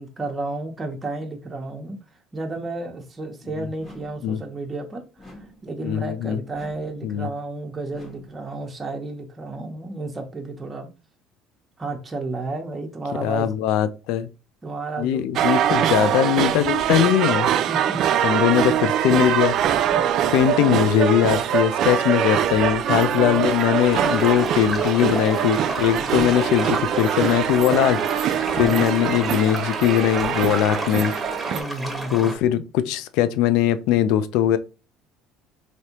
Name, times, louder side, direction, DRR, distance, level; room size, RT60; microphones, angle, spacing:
voice 1, 0.0-2.0 2.3-5.0 5.3-10.9 11.8-13.5 14.6-15.3 15.7-15.9 17.7-18.4 19.9-20.0 23.1-23.4 26.0-26.3 28.5-28.8 31.5-32.3, right 2 dB, 25° right, 0.8 m, -32 dB
sound 1, 3.8-4.3 5.2-5.7 6.5-7.0 7.9-8.4, left 1 dB, 30° left, 1.4 m, -45 dB
voice 2, 5.8-6.4 7.0-7.3 13.2-14.3 15.0-17.5 18.2-19.9 20.3-31.1 32.1-34.6, left 11 dB, 75° left, 0.3 m, -21 dB
sound 2, 15.4-31.6, right 9 dB, 60° right, 0.3 m, -23 dB
sound 3, 23.9-32.4, right 1 dB, 5° right, 1.2 m, -31 dB
3.2 x 2.6 x 2.9 m
supercardioid pair, 85°, 0 cm